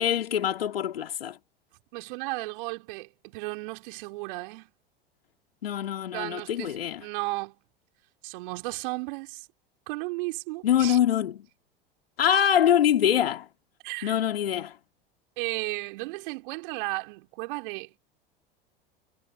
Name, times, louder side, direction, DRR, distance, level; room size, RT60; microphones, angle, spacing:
voice 1, 0.0-1.4 5.6-7.0 10.6-11.4 12.2-13.5 14.0-14.7, left 10 dB, 75° left, 2.9 m, -24 dB
voice 2, 1.9-4.7 6.1-7.6 8.2-9.5 9.9-11.0 13.8-14.2 15.4-17.9, right 25 dB, 60° right, 4.7 m, -34 dB
figure-of-eight pair, 80°, 29 cm